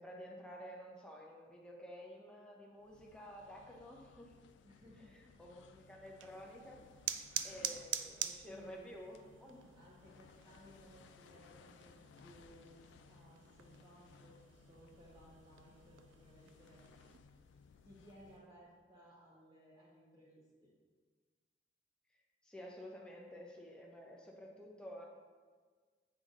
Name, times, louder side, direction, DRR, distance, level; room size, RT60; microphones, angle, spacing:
voice 1, 0.0-4.3 5.2-6.8 7.4-9.6 22.4-25.1, equal, 5° left, -1 dB, 0.7 m, -51 dB
sound 1, 2.8-18.6, left 5 dB, 75° left, 0.3 m, -63 dB
voice 2, 4.6-5.1 5.7-5.8 8.5-8.9 9.8-12.8 13.1-14.4 14.7-17.1 17.8-20.7, equal, 25° right, -8 dB, 1.0 m, -61 dB
sound 2, 6.0-17.2, right 11 dB, 85° right, 0.3 m, -47 dB
7.9 x 3.5 x 3.7 m, 1.5 s
head